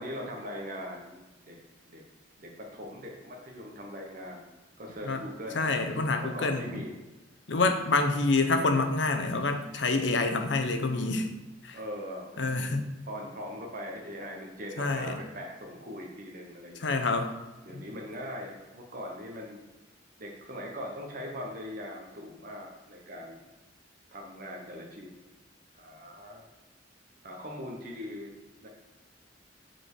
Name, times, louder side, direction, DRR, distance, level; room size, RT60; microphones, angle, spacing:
voice 1, 0.0-1.5 1.9-2.0 2.4-4.5 4.8-5.8 6.2-6.9 11.7-17.0 17.6-19.6 20.2-23.5 24.1-25.2 25.7-26.4 27.2-28.7, equal, 50° right, 0 dB, 0.9 m, -41 dB
voice 2, 5.6-6.8 7.5-11.3 11.6-11.8 12.4-12.9 14.8-15.2 16.8-17.3 17.7-17.8, left 3 dB, 75° left, 6 dB, 0.7 m, -27 dB
5.3 x 4.3 x 4.6 m, 1.1 s
head